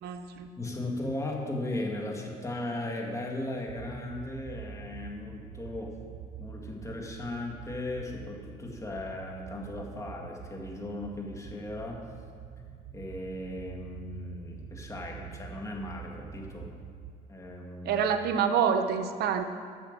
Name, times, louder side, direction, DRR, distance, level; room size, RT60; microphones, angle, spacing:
voice 1, 0.0-0.5 17.8-19.4, right 7 dB, 70° right, 7 dB, 0.8 m, -27 dB
voice 2, 0.6-5.9 6.4-12.0 12.9-16.7 17.3-18.0, left 1 dB, 20° left, -1 dB, 2.0 m, -37 dB
sound 1, 3.7-17.1, right 8 dB, 90° right, 1.4 m, -46 dB
11.0 x 7.1 x 6.7 m, 2.2 s
cardioid pair, 110°, 17 cm